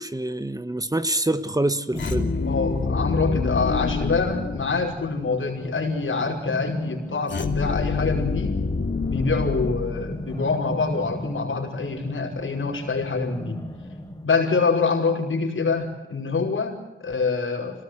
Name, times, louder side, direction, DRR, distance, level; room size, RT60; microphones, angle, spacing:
voice 1, 0.0-2.3, right 1 dB, 20° right, 1.2 m, -26 dB
sound 1, 1.9-5.3 7.3-10.6, left 4 dB, 65° left, 2.9 m, -27 dB
sound 2, 1.9-14.3, equal, 20° left, 3.9 m, -37 dB
voice 2, 2.3-8.6 9.1-13.6 14.2-17.8, left 4 dB, 85° left, 5.5 m, -25 dB
27.0 x 19.0 x 7.9 m
wide cardioid pair, 80°, 20 cm